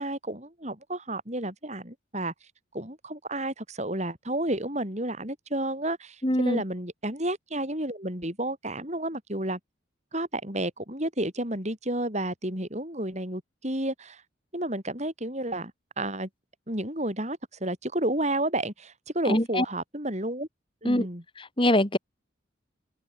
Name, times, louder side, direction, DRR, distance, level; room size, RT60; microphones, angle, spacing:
voice 1, 0.0-2.3 2.7-9.6 10.1-14.2 14.5-15.7 16.0-16.3 16.7-20.5 20.8-21.2, right 1 dB, 35° right, 7.1 m, -31 dB
voice 2, 6.2-6.6 19.3-19.6 20.8-21.1 21.4-22.0, left 1 dB, 25° left, 2.6 m, -23 dB
head